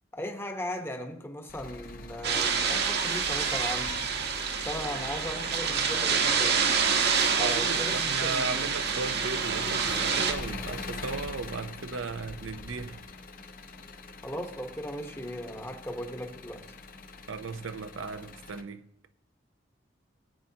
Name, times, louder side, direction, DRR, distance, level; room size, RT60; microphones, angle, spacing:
voice 1, 0.1-4.0 4.6-6.7 7.4-8.7 14.2-16.7, equal, 10° left, 1.0 m, -37 dB
Engine, 1.5-18.6, left 3 dB, 45° left, 0.9 m, -43 dB
sound 1, 2.2-10.3, right 6 dB, 55° right, 1.1 m, -27 dB
voice 2, 7.4-13.0 17.3-18.9, right 4 dB, 85° right, 0.6 m, -36 dB
17.5 x 9.1 x 2.8 m
head